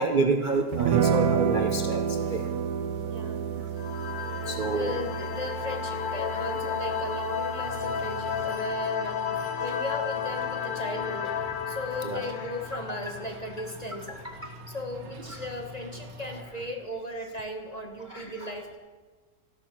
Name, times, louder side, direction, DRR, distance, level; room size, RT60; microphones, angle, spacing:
voice 1, 0.0-2.4 4.5-5.0 9.6-9.7 12.0-12.2 14.4-14.5 15.3-15.4 18.1-18.5, right 3 dB, 35° right, 3 dB, 0.8 m, -28 dB
sound 1, 0.7-8.5, right 7 dB, 65° right, 1.1 m, -30 dB
voice 2, 3.1-3.5 4.3-4.4 4.7-9.3 9.6-11.3 11.7-14.2 14.7-18.8, left 1 dB, 25° left, 3 dB, 1.4 m, -37 dB
sound 2, 3.8-14.1, left 7 dB, 60° left, 0.5 m, -33 dB
sound 3, 7.6-16.4, equal, 85° right, 1.9 m, -45 dB
14.5 x 12.0 x 6.1 m, 1.4 s
omnidirectional pair, 1.9 m